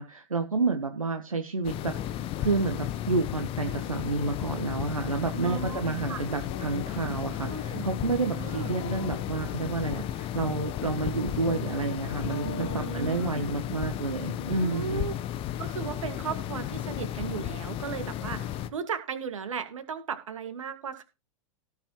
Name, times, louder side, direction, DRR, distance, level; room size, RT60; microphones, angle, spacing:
voice 1, 0.0-15.1, right 3 dB, 85° right, 6 dB, 1.2 m, -30 dB
sound 1, 1.6-18.7, left 11 dB, 30° left, 1.0 m, -34 dB
voice 2, 5.3-6.2 7.4-7.8 8.3-8.7 12.4-13.5 14.6-15.3 15.6-21.0, right 6 dB, 70° right, 9 dB, 1.9 m, -36 dB
sound 2, 6.5-13.6, left 10 dB, 55° left, 1.5 m, -44 dB
17.5 x 7.2 x 3.1 m, 0.30 s
figure-of-eight pair, 95°, 17 cm